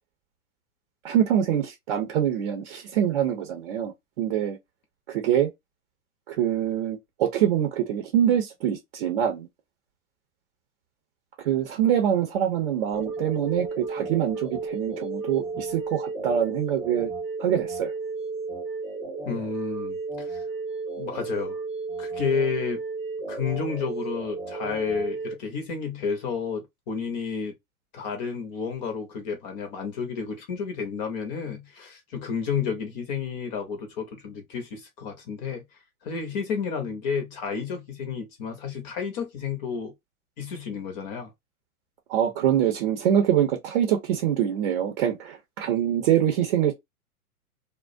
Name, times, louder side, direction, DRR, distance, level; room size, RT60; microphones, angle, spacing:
voice 1, 1.0-4.6 5.1-5.5 6.3-9.5 11.4-17.1 17.4-17.9 42.1-46.7, right 10 dB, 40° right, 0.7 m, -24 dB
sound 1, 12.9-25.3, right 4 dB, 15° right, 1.0 m, -33 dB
voice 2, 19.3-20.5 21.0-21.6 22.0-22.8 23.3-27.6 27.9-35.6 36.0-39.9 40.4-41.3, left 6 dB, 30° left, 0.6 m, -31 dB
2.3 x 2.1 x 2.5 m
hypercardioid pair, 120°, 44 cm